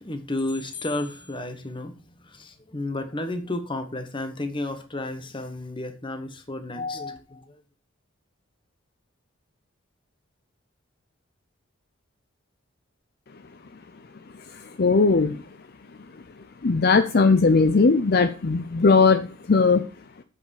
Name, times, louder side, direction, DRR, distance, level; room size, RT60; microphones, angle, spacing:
voice 1, 0.0-1.9 2.2-7.6, left 2 dB, 25° left, 1.2 m, -32 dB
voice 2, 14.5-15.4 16.6-19.9, left 4 dB, 50° left, 0.5 m, -19 dB
8.4 x 5.5 x 6.4 m
head